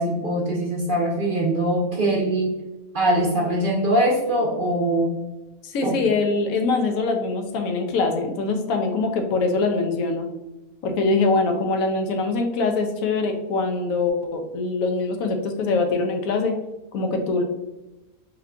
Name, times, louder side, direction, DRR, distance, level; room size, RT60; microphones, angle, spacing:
voice 1, 0.0-2.5 2.9-5.1 5.8-5.9, right 1 dB, 45° right, -3 dB, 0.7 m, -22 dB
voice 2, 5.6-10.3 10.8-16.6 16.9-17.4, left 3 dB, 75° left, 4 dB, 1.0 m, -23 dB
3.6 x 3.5 x 2.2 m, 1.0 s
omnidirectional pair, 1.5 m